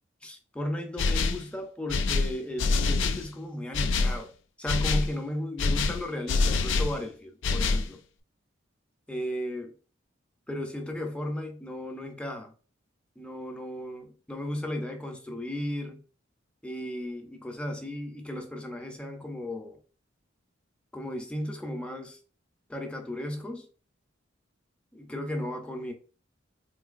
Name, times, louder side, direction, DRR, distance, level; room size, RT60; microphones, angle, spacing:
voice 1, 0.2-4.3 4.6-8.0 9.1-9.7 10.5-12.5 13.2-16.0 16.6-19.8 20.9-22.2 22.7-23.7 24.9-25.9, left 1 dB, 5° left, 0.5 m, -35 dB
sound 1, 1.0-1.5 1.9-3.3 3.7-4.2 4.7-5.1 5.6-7.0 7.4-7.9, left 3 dB, 65° left, 0.4 m, -25 dB
3.8 x 2.7 x 2.4 m
head